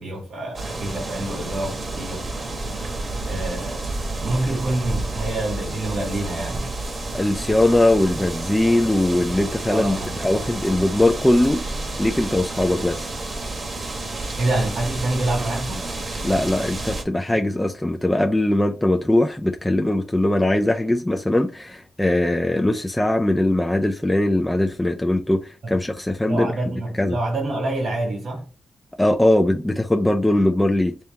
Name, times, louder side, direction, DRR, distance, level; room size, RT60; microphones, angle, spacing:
voice 1, 0.0-2.5 3.3-3.9 4.2-6.7 9.7-10.1 14.4-15.8 25.6-25.8 26.3-28.5, right 2 dB, 85° right, 1.9 m, -27 dB
sound 1, 0.5-17.0, right 2 dB, 40° right, 1.0 m, -30 dB
voice 2, 7.1-11.7 12.0-13.1 16.2-26.5 26.9-27.2 29.0-31.0, left 1 dB, 10° left, 0.4 m, -20 dB
3.4 x 2.8 x 4.2 m
wide cardioid pair, 150°, 0 cm